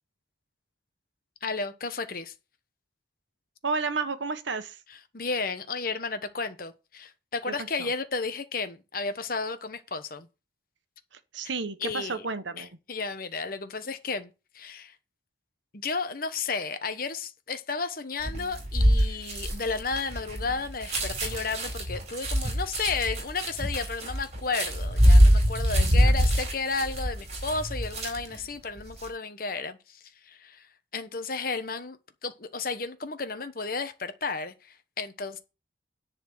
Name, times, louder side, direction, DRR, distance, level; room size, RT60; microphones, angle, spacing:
voice 1, 1.4-2.3 5.1-10.3 11.8-12.3 12.6-14.9 15.7-30.7 30.9-35.4, left 4 dB, 50° left, 1.1 m, -33 dB
voice 2, 3.6-4.8 7.5-7.6 7.8-7.9 11.3-12.7 25.8-26.1, right 4 dB, 75° right, 1.1 m, -31 dB
sound 1, 18.2-28.4 28.8-29.1, equal, 35° right, 4.5 m, -24 dB
10.5 x 4.2 x 7.8 m
head